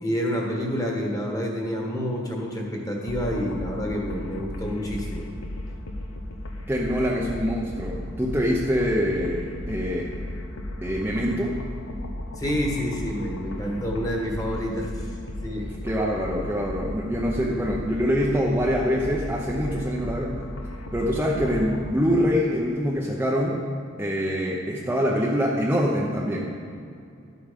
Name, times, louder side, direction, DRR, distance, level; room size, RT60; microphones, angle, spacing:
voice 1, 0.0-5.2 12.4-14.9 15.4-15.7, equal, 15° left, 0 dB, 1.6 m, -28 dB
sound 1, 3.1-21.9, left 1 dB, 80° left, 1.0 m, -35 dB
voice 2, 6.7-10.1 10.8-11.6 15.8-20.4 20.9-23.6 24.0-26.4, equal, 10° right, -3 dB, 0.8 m, -25 dB
12.0 x 8.2 x 5.2 m, 2.4 s
head